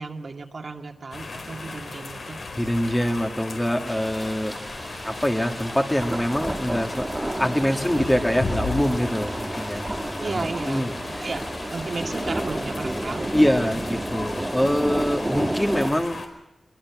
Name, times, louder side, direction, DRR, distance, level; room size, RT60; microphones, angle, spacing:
voice 1, 0.0-2.5 10.2-13.8, right 3 dB, 55° right, 2 dB, 2.1 m, -34 dB
sound 1, 1.1-16.3, left 3 dB, 70° left, 4.6 m, -36 dB
voice 2, 2.6-4.5 5.1-9.9 10.2-10.9 13.3-16.2, equal, 10° left, 3 dB, 1.9 m, -24 dB
sound 2, 3.9-15.9, right 1 dB, 15° right, 1.2 m, -31 dB
23.0 x 23.0 x 6.0 m, 0.92 s
wide cardioid pair, 120°, 0 cm